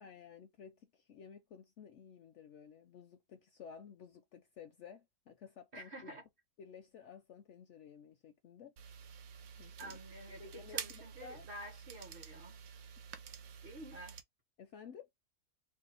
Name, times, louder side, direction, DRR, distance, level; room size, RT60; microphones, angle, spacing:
voice 1, 0.0-6.1 6.6-8.7 9.6-10.0 10.4-11.5 13.6-13.7 14.6-15.1, left 7 dB, 65° left, 0.7 m, -54 dB
voice 2, 5.7-6.2 9.8-12.6 13.6-14.2, right 1 dB, 45° right, 0.8 m, -50 dB
sound 1, 8.8-14.2, right 8 dB, 70° right, 1.0 m, -49 dB
2.7 x 2.1 x 3.9 m
omnidirectional pair, 1.6 m